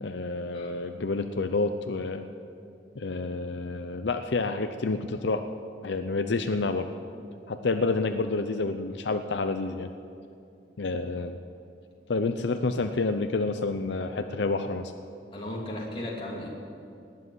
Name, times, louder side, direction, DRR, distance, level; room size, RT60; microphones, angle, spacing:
voice 1, 0.0-2.3 3.0-5.4 5.8-6.9 7.5-9.9 10.8-11.4 12.1-14.9, left 3 dB, 80° left, 8 dB, 0.6 m, -29 dB
voice 2, 15.3-16.5, left 1 dB, 30° left, -3 dB, 2.9 m, -35 dB
19.5 x 7.7 x 9.5 m, 2.4 s
head